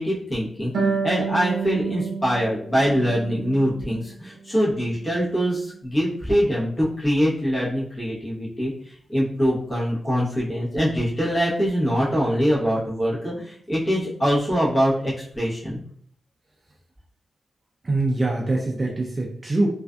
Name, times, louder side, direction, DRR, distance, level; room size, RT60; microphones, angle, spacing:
voice 1, 0.0-15.8, equal, 25° left, -7 dB, 0.9 m, -23 dB
Harp, 0.7-4.1 4.5-5.5, right 5 dB, 90° right, 0.6 m, -30 dB
voice 2, 17.8-19.7, right 2 dB, 25° right, -1 dB, 0.3 m, -23 dB
2.4 x 2.4 x 2.2 m, 0.64 s
wide cardioid pair, 145°, 0 cm